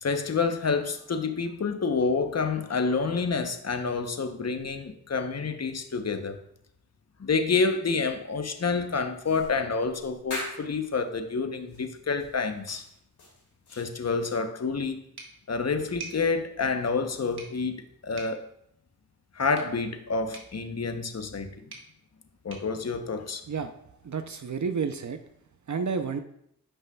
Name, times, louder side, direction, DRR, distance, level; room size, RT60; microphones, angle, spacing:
voice 1, 0.0-6.4 7.2-12.8 13.8-15.0 15.5-18.5 19.3-21.5 22.4-23.4, left 4 dB, 40° left, 7 dB, 0.9 m, -28 dB
sound 1, 9.2-10.9 11.7-11.9 12.2-14.4, left 1 dB, 85° left, 2.3 m, -41 dB
sound 2, 15.2-23.8, right 4 dB, 80° right, 1.5 m, -50 dB
voice 2, 24.0-25.2 25.7-26.2, right 5 dB, 50° right, 8 dB, 0.6 m, -30 dB
9.7 x 5.5 x 2.3 m, 0.72 s
cardioid pair, 40°, 38 cm